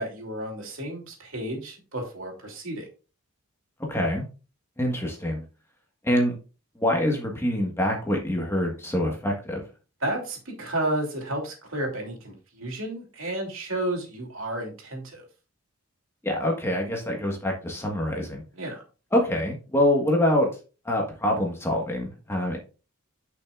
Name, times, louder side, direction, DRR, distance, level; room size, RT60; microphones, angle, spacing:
voice 1, 0.0-2.9 10.0-15.2 18.6-18.8, right 1 dB, 65° right, 1 dB, 2.9 m, -32 dB
voice 2, 3.9-4.3 4.8-5.4 6.0-6.4 6.7-9.6 16.2-18.4 19.1-20.5 20.8-22.6, left 1 dB, 10° left, 0 dB, 1.5 m, -25 dB
10.5 x 5.8 x 2.5 m, 0.33 s
head